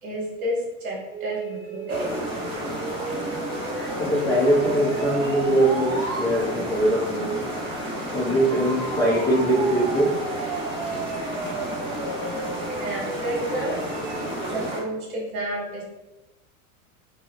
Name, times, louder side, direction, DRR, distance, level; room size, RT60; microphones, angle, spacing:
voice 1, 0.0-2.1 6.4-6.5 12.8-13.7 14.5-15.8, right 1 dB, 80° right, -4 dB, 1.2 m, -30 dB
sound 1, 1.1-6.3 8.5-14.3, right 3 dB, 55° right, 1.1 m, -34 dB
sound 2, 1.9-14.8, equal, 10° right, 1.2 m, -32 dB
voice 2, 3.7-7.4 8.1-10.1, right 1 dB, 10° left, -8 dB, 0.4 m, -22 dB
2.9 x 2.0 x 2.3 m, 1.0 s
hypercardioid pair, 95°, 43 cm